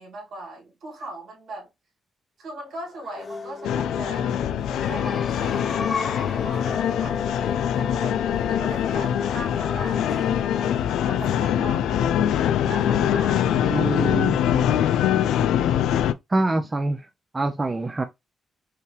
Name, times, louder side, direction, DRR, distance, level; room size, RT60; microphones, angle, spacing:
voice 1, 0.0-1.7 2.4-4.4 4.7-12.1 12.7-13.9 14.4-15.1, right 1 dB, 75° right, 2.3 m, -40 dB
sound 1, 3.0-12.5, left 4 dB, 40° left, 0.9 m, -35 dB
sound 2, 3.6-16.1, left 10 dB, 90° left, 0.3 m, -23 dB
voice 2, 13.7-14.4 16.3-17.0 17.3-18.0, right 2 dB, 25° right, 0.6 m, -25 dB
5.6 x 2.3 x 3.2 m
cardioid pair, 70°, 0 cm